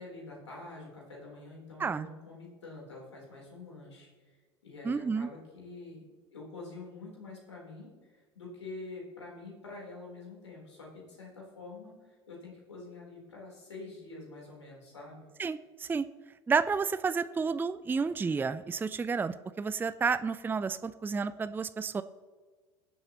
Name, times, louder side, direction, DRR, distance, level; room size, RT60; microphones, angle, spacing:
voice 1, 0.0-4.1 4.6-6.0 6.3-15.3, left 3 dB, 85° left, -3 dB, 4.0 m, -46 dB
voice 2, 4.8-5.3 15.4-16.1 16.5-22.0, right 5 dB, 15° right, 13 dB, 0.4 m, -31 dB
22.0 x 7.9 x 3.1 m, 1.4 s
figure-of-eight pair, 75°, 14 cm